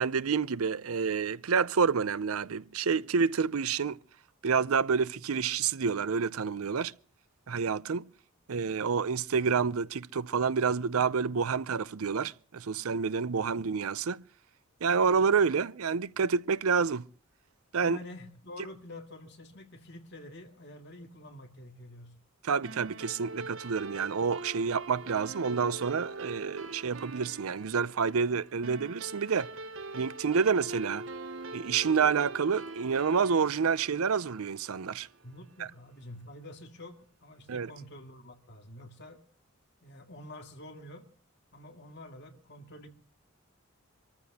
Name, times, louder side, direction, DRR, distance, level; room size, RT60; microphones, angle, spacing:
voice 1, 0.0-4.0 4.4-6.9 7.5-8.0 8.5-14.2 14.8-17.1 17.7-18.0 22.4-29.5 29.9-31.0 31.5-35.1 37.5-37.7, right 5 dB, 85° right, 0.6 m, -28 dB
voice 2, 17.8-22.1 35.2-39.2 39.8-41.1 41.5-42.9, left 1 dB, 50° left, 2.3 m, -47 dB
sound 1, 22.6-35.4, right 3 dB, 60° right, 0.9 m, -43 dB
25.5 x 14.5 x 2.9 m
head